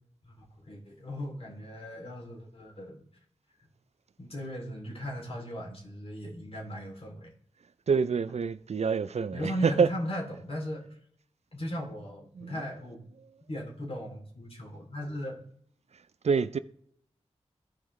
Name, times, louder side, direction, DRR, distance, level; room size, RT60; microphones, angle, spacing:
voice 1, 0.2-3.0 4.2-7.3 9.3-10.9 11.5-13.0 13.5-15.4, equal, 55° left, 2.8 m, -37 dB
voice 2, 7.9-9.9 12.4-12.5 16.2-16.6, right 5 dB, 65° right, 0.4 m, -26 dB
14.0 x 4.8 x 3.1 m
cardioid pair, 40°, 12 cm